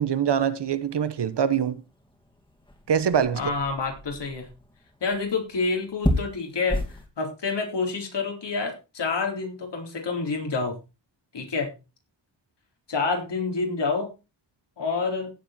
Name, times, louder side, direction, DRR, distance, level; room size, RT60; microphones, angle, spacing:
voice 1, 0.0-1.8 2.9-3.4, right 8 dB, 65° right, 1.1 m, -24 dB
sound 1, 0.6-7.1, left 1 dB, 10° left, 2.3 m, -33 dB
voice 2, 3.3-4.5 5.0-10.8 11.3-11.7 12.9-14.1 14.8-15.3, left 4 dB, 70° left, 3.9 m, -28 dB
16.5 x 7.5 x 4.3 m
wide cardioid pair, 180°, 44 cm